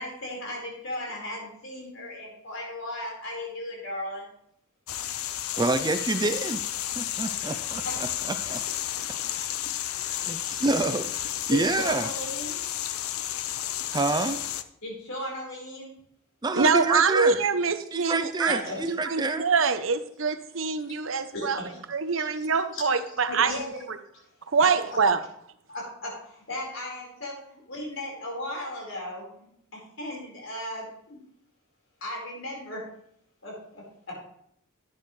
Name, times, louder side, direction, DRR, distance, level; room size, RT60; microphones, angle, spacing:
voice 1, 0.0-4.3 7.8-7.9 11.5-12.6 14.8-15.9 18.5-18.8 20.9-21.8 22.1-22.4 22.7-22.8 23.3-23.8 24.1-24.2 24.6-24.7 25.7-31.2 32.0-32.8 33.4-34.1, left 1 dB, 65° left, -2 dB, 4.6 m, -36 dB
sound 1, 4.9-14.6, left 12 dB, 85° left, 0.6 m, -32 dB
voice 2, 5.6-6.6 7.0-8.6 10.0-12.1 13.9-14.4 16.4-17.4 17.9-19.4, right 2 dB, 20° right, 9 dB, 0.5 m, -28 dB
voice 3, 16.5-18.6 18.9-21.6 21.9-23.6 23.9-24.0 24.5-25.2, right 5 dB, 65° right, 11 dB, 0.8 m, -24 dB
11.0 x 9.5 x 3.2 m, 0.71 s
head